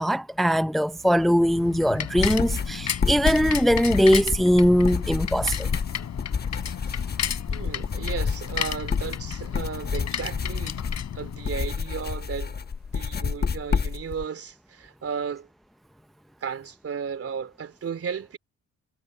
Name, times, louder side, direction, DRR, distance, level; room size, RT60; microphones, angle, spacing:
voice 1, 0.0-5.7, equal, ahead, 0.6 m, -21 dB
Bicycle, 1.0-11.9, left 9 dB, 60° left, 3.6 m, -33 dB
sound 1, 2.2-14.2, left 5 dB, 35° left, 1.1 m, -29 dB
voice 2, 7.5-10.8 11.1-12.6 12.9-15.5 16.4-18.4, right 7 dB, 50° right, 3.4 m, -34 dB
cardioid pair, 90°, 30 cm